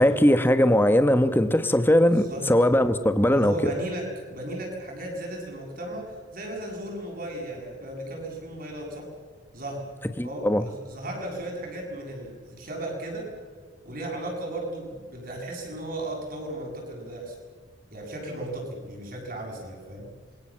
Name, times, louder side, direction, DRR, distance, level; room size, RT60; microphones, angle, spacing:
voice 1, 0.0-3.5 10.2-10.7, left 1 dB, 10° left, 10 dB, 1.2 m, -20 dB
voice 2, 2.0-2.4 3.3-9.1 9.5-9.8 10.2-13.3 13.8-17.4 17.9-20.1, right 1 dB, 45° right, 0 dB, 7.9 m, -35 dB
27.5 x 23.0 x 7.5 m, 1.5 s
head